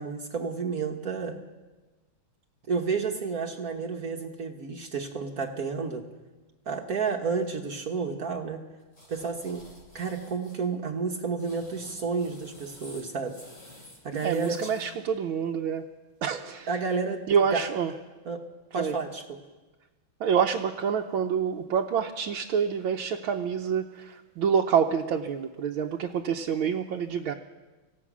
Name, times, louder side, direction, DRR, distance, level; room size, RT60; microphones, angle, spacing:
voice 1, 0.0-1.3 2.7-6.0 6.6-8.6 9.1-9.6 9.9-13.3 14.0-14.7 16.3-16.4 16.7-17.2 17.5-17.6 18.2-18.4 18.7-19.2, right 5 dB, 50° right, 3 dB, 1.6 m, -31 dB
sound 1, 8.9-10.6 11.2-14.9, left 1 dB, 35° left, 7.2 m, -51 dB
voice 2, 14.2-15.8 16.2-16.7 17.3-17.9 18.8-18.9 20.2-27.3, right 7 dB, 80° right, 2 dB, 1.7 m, -27 dB
26.5 x 16.0 x 6.2 m, 1.2 s
omnidirectional pair, 2.2 m